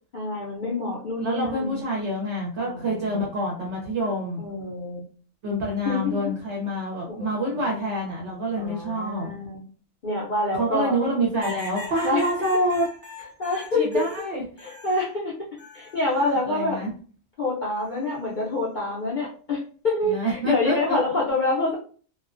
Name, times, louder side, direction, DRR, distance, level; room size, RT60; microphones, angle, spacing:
voice 1, 0.1-1.8 2.6-3.2 4.4-5.0 5.8-6.2 7.1-7.9 8.6-9.6 10.0-11.0 12.0-12.3 13.4-13.9 14.6-15.3 15.7-16.8 17.4-21.7, left 2 dB, 55° left, -6 dB, 0.5 m, -27 dB
voice 2, 1.2-4.4 5.4-9.3 10.5-12.8 13.7-14.4 16.1-16.9 20.0-21.0, equal, 65° right, -2 dB, 0.9 m, -27 dB
sound 1, 11.4-15.1 15.6-16.4 17.7-18.2, left 1 dB, 15° left, 0.6 m, -40 dB
2.4 x 2.1 x 2.4 m, 0.43 s
omnidirectional pair, 1.3 m